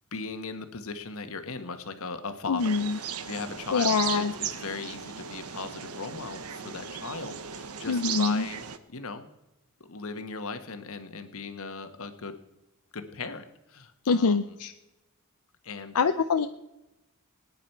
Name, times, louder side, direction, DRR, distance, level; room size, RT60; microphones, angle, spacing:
voice 1, 0.1-8.6 8.9-9.3 9.9-12.4 12.9-14.6 15.6-16.0, left 4 dB, 65° left, 8 dB, 1.4 m, -38 dB
voice 2, 2.5-3.0 3.7-4.3 7.9-8.5 14.0-14.7 15.9-16.5, left 5 dB, 85° left, 8 dB, 0.6 m, -25 dB
sound 1, 2.6-8.8, right 8 dB, 80° right, 1.0 m, -36 dB
24.0 x 9.6 x 4.6 m, 0.99 s
head